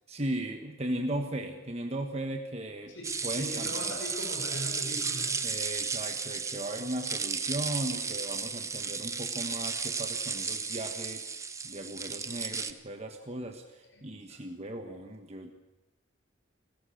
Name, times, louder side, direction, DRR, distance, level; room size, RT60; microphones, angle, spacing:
voice 1, 0.1-2.9 3.2-3.9 5.4-11.3 11.6-15.5, right 1 dB, 35° right, 4 dB, 1.3 m, -37 dB
voice 2, 2.9-5.4 13.9-14.4, equal, 75° left, 0 dB, 6.0 m, -40 dB
sound 1, 3.0-12.7, right 5 dB, 15° right, 0.9 m, -34 dB
28.5 x 15.5 x 6.5 m, 1.0 s
head